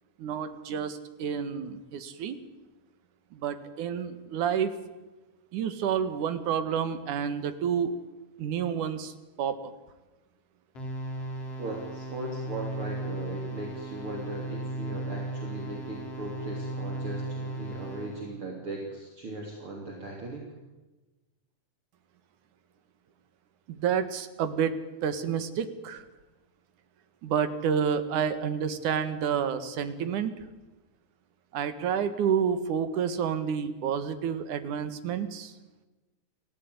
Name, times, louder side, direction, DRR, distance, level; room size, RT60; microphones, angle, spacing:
voice 1, 0.2-2.4 3.3-4.7 5.5-8.0 8.4-9.6 23.7-24.8 25.0-26.0 27.2-30.3 31.5-35.5, right 7 dB, 80° right, 11 dB, 3.1 m, -29 dB
sound 1, 10.8-18.3, right 2 dB, 50° left, 5.5 m, -36 dB
voice 2, 11.6-20.5, right 2 dB, 45° right, -1 dB, 4.1 m, -38 dB
28.0 x 15.5 x 9.5 m, 1.1 s
omnidirectional pair, 3.5 m